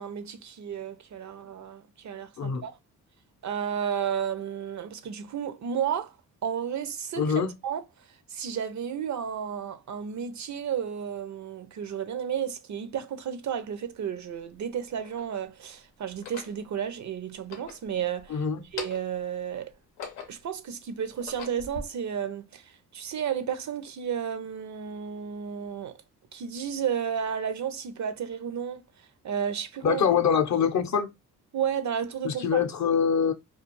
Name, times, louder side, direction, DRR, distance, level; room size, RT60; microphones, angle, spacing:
voice 1, 0.0-2.8 3.4-6.1 6.4-7.3 7.6-7.8 8.3-18.4 18.7-19.7 20.3-26.0 26.3-28.8 29.2-30.0 31.5-32.7, right 8 dB, 50° right, 0.5 m, -32 dB
voice 2, 7.2-7.5 18.3-18.6 29.8-31.1 32.2-33.3, left 7 dB, 45° left, 0.6 m, -24 dB
sound 1, 13.6-13.7 14.5-15.3 16.1-16.6 17.3-18.3 18.6-19.2 19.7-20.5 21.0-21.8, left 5 dB, 90° left, 0.7 m, -41 dB
2.3 x 2.3 x 2.9 m
supercardioid pair, 50°, 38 cm